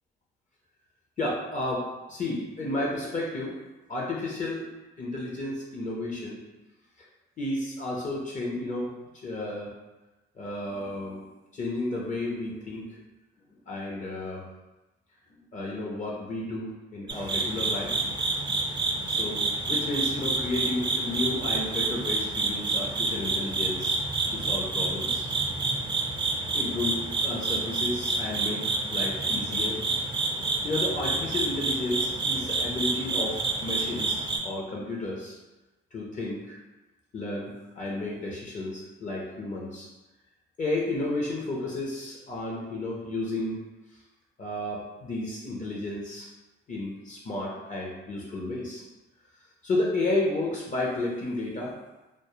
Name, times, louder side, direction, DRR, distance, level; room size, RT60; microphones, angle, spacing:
voice 1, 1.2-3.5 3.9-4.7 5.0-6.4 7.4-8.9 9.2-9.7 10.4-11.2 11.5-12.9 13.7-14.4 15.5-17.9 19.1-24.0 24.3-25.3 26.5-29.8 30.6-35.4 35.9-36.6 37.1-39.9 40.6-43.6 44.4-46.3 46.7-48.8 49.6-51.8, left 2 dB, 40° left, -3 dB, 0.5 m, -32 dB
sound 1, 17.1-34.4, right 3 dB, 25° right, 0.4 m, -28 dB
2.2 x 2.0 x 2.9 m, 1.1 s
cardioid pair, 90°, 20 cm